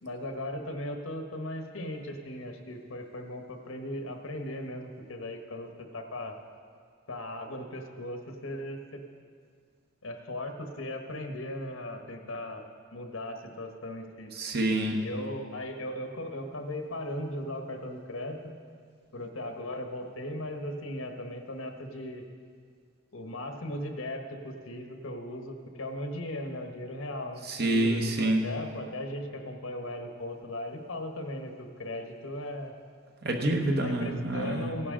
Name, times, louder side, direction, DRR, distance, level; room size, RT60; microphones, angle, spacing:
voice 1, 0.0-6.4 7.1-9.0 10.0-14.3 15.0-18.5 19.1-22.2 23.1-32.7 33.8-34.9, left 1 dB, 80° left, 4 dB, 1.2 m, -37 dB
voice 2, 14.4-15.0 27.5-28.4 33.2-34.7, right 1 dB, 50° right, 3 dB, 1.1 m, -27 dB
16.0 x 10.5 x 3.8 m, 2.1 s
head